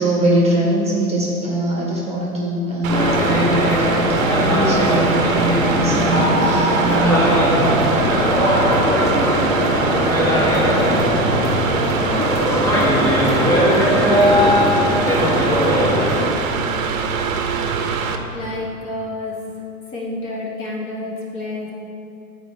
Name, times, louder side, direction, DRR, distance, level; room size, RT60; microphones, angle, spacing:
voice 1, 0.0-7.8, right 1 dB, 15° right, -4 dB, 1.0 m, -21 dB
Mechanical fan, 2.8-18.2, right 5 dB, 60° right, 0.7 m, -24 dB
sound 1, 2.9-16.3, equal, 5° left, 0.6 m, -18 dB
voice 2, 12.8-13.4 15.1-15.3 18.3-19.4 19.9-21.7, left 2 dB, 30° left, -3 dB, 1.0 m, -30 dB
8.7 x 4.4 x 2.7 m, 2.7 s
hypercardioid pair, 115°, 45 cm